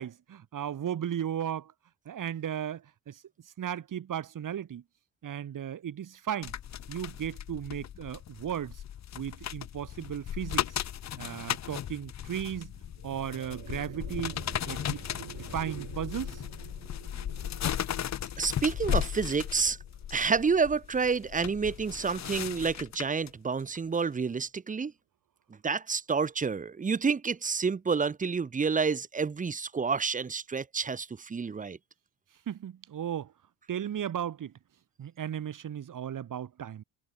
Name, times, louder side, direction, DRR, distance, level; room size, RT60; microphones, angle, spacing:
voice 1, 0.0-1.7 2.1-3.2 3.6-4.8 5.2-6.5 6.9-8.8 9.1-10.7 11.2-12.7 13.0-14.4 14.7-16.4 32.5-33.3 33.7-34.5 35.0-36.8, right 9 dB, 40° right, 2.7 m, -35 dB
sound 1, 6.4-23.3 23.7-24.0, left 10 dB, 35° left, 0.9 m, -36 dB
sound 2, 12.6-23.1, right 14 dB, 65° right, 7.8 m, -51 dB
voice 2, 18.4-19.8 20.1-24.9 25.6-31.8, right 5 dB, 15° right, 0.8 m, -29 dB
cardioid pair, 150°, 47 cm